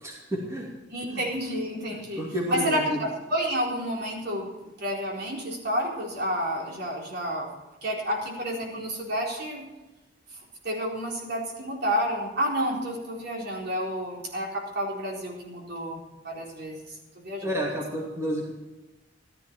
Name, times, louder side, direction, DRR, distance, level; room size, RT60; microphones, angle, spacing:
voice 1, 0.0-0.7 1.1-1.2 1.9-3.0 17.4-18.5, equal, 15° right, -2 dB, 2.6 m, -30 dB
voice 2, 0.9-2.2 2.5-4.5 4.8-7.5 7.8-9.7 10.6-16.8 17.2-17.5, equal, 60° right, -1 dB, 4.3 m, -30 dB
15.5 x 12.5 x 4.6 m, 1.1 s
head